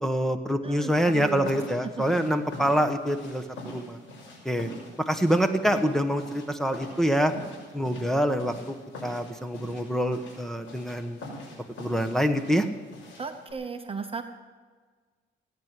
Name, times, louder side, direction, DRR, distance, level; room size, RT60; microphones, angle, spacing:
voice 1, 0.0-3.4 3.7-4.0 4.4-4.7 5.1-7.3 7.7-8.7 9.0-11.2 11.8-12.7, equal, ahead, 8 dB, 1.3 m, -25 dB
voice 2, 0.6-1.5 13.2-14.2, right 5 dB, 30° right, 6 dB, 1.0 m, -35 dB
sound 1, 0.9-13.5, left 1 dB, 75° left, 5.8 m, -44 dB
17.5 x 9.6 x 7.6 m, 1.5 s
cardioid pair, 90°, 20 cm